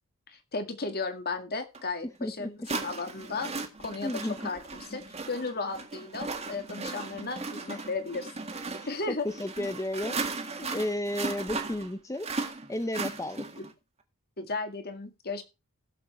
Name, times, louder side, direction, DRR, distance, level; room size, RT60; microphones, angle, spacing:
voice 1, 0.3-3.5 3.8-8.3 8.9-9.3 14.4-15.4, left 3 dB, 45° left, 2.0 m, -35 dB
sound 1, 1.7-1.8 2.6-13.7, right 3 dB, 30° right, 1.8 m, -37 dB
voice 2, 2.2-2.5 4.0-4.3 7.7-7.9 8.8-10.2 10.6-12.3 12.7-13.5, left 1 dB, 15° left, 0.7 m, -33 dB
16.5 x 7.3 x 4.3 m
head